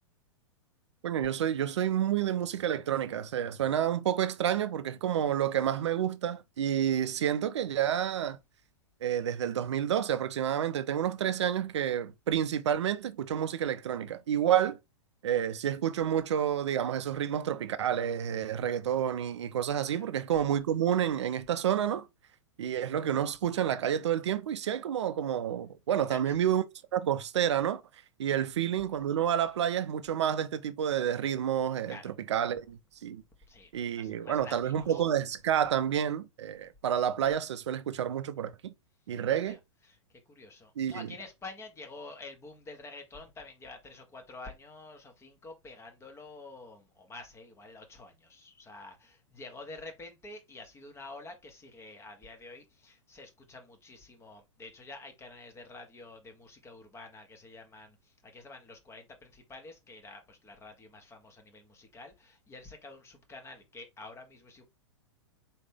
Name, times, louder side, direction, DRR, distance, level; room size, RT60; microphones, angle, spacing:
voice 1, 1.0-8.4 9.0-14.8 15.2-22.1 22.6-26.6 26.9-27.8 28.2-33.2 33.7-38.7 39.1-39.6 40.8-41.1, right 10 dB, 65° right, 0.5 m, -29 dB
voice 2, 25.9-26.4 28.2-28.4 31.9-32.1 33.5-35.0 39.2-39.6 39.8-40.0 40.3-64.6, left 3 dB, 15° left, 1.2 m, -48 dB
4.4 x 3.2 x 3.5 m
figure-of-eight pair, 100°, 16 cm